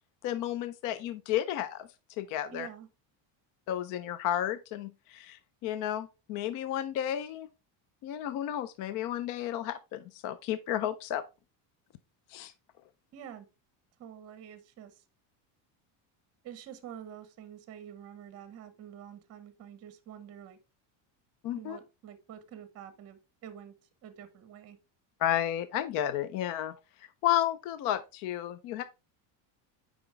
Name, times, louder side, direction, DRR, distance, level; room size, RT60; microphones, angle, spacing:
voice 1, 0.2-1.9 2.2-2.7 3.7-7.5 8.0-11.2 12.3-12.5 21.4-21.8 25.2-26.7 27.2-28.8, left 11 dB, 45° left, 0.4 m, -32 dB
voice 2, 2.5-2.9 13.1-13.5 14.0-14.9 16.4-20.6 21.6-23.7 24.0-24.8, right 9 dB, 35° right, 0.9 m, -47 dB
7.0 x 5.0 x 3.2 m
cardioid pair, 155°, 46 cm